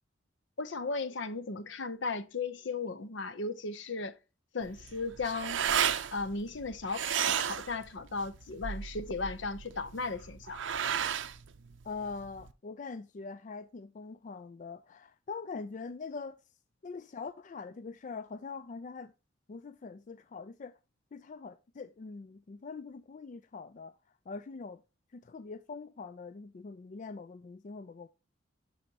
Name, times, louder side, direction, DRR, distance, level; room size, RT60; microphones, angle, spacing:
voice 1, 0.6-4.2 4.5-5.6 6.1-10.6, left 3 dB, 70° left, 0.7 m, -36 dB
sound 1, 4.6-12.5, right 8 dB, 75° right, 0.6 m, -34 dB
voice 2, 11.8-16.4 16.8-19.1 19.5-20.8 21.1-24.0 24.3-24.8 25.1-28.1, left 4 dB, 40° left, 0.4 m, -43 dB
12.0 x 4.3 x 2.8 m
head